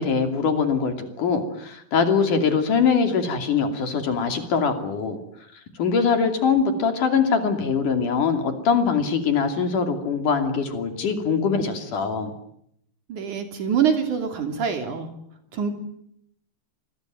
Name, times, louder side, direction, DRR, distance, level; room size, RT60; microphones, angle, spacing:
voice 1, 0.0-5.2 5.8-12.3, left 5 dB, 55° left, 7 dB, 4.1 m, -22 dB
voice 2, 13.1-15.1 15.5-15.7, right 7 dB, 55° right, 6 dB, 4.2 m, -24 dB
27.0 x 21.0 x 9.3 m, 0.73 s
omnidirectional pair, 4.4 m